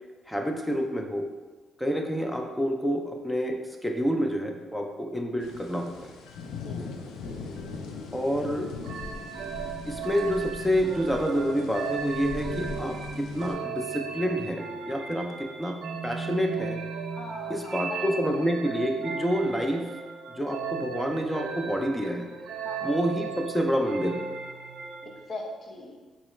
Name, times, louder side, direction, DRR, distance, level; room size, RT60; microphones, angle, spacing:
voice 1, 0.3-1.2 1.8-3.5 3.8-6.1 8.1-8.7 9.9-16.8 17.5-19.9 20.3-22.3 22.8-24.2, equal, 5° left, 3 dB, 0.4 m, -28 dB
sound 1, 5.4-13.5, left 4 dB, 85° left, 0.4 m, -40 dB
voice 2, 6.6-7.2 17.1-18.5 22.6-23.0 25.3-26.0, left 2 dB, 50° left, 0 dB, 0.6 m, -41 dB
sound 2, 8.8-25.3, right 5 dB, 70° right, 0.4 m, -36 dB
4.0 x 2.4 x 3.1 m, 1.3 s
cardioid pair, 90°, 0 cm